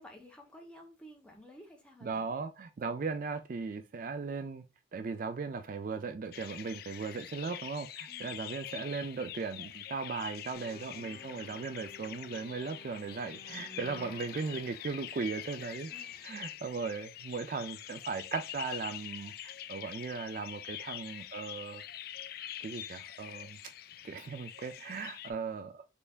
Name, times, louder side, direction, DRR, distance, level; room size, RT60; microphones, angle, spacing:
voice 1, 0.0-2.3 8.1-8.4 15.9-16.3, equal, 5° left, 1.0 m, -53 dB
voice 2, 2.0-4.6 4.9-15.9 16.2-21.8 22.6-23.6 24.0-25.9, right 4 dB, 45° right, 0.3 m, -38 dB
sound 1, 6.3-25.3, left 12 dB, 50° left, 0.3 m, -45 dB
sound 2, 10.5-16.5, left 1 dB, 35° left, 0.9 m, -54 dB
4.2 x 3.3 x 2.4 m
head